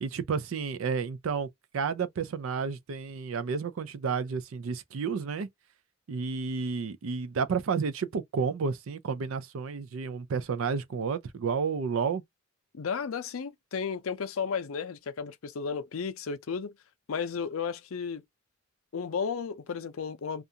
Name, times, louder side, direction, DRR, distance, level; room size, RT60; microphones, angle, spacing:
voice 1, 0.0-1.5 1.7-5.5 6.1-12.2, right 5 dB, 75° right, 0.4 m, -31 dB
voice 2, 12.7-16.7 17.1-18.2 18.9-20.4, left 6 dB, 80° left, 0.5 m, -33 dB
2.5 x 2.1 x 2.7 m
head